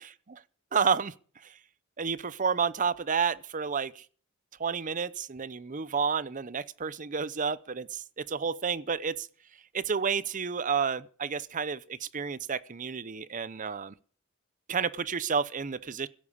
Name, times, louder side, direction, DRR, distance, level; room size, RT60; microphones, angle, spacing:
voice 1, 0.7-1.6 2.0-4.1 4.6-9.3 9.7-13.9 14.7-16.1, right 6 dB, 40° right, 0.6 m, -30 dB
16.0 x 8.7 x 8.4 m
head